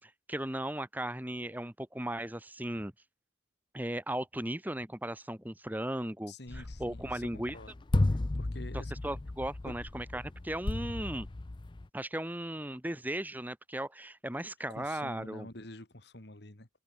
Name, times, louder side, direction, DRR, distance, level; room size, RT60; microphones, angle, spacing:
voice 1, 0.0-2.9 3.7-7.6 9.0-11.3 11.9-15.5, right 1 dB, 10° right, 1.3 m, -37 dB
voice 2, 6.3-7.7 8.1-9.2 9.7-9.8 14.8-16.7, left 1 dB, 55° left, 2.3 m, -48 dB
sound 1, 6.5-11.9, left 2 dB, 25° left, 0.5 m, -34 dB
head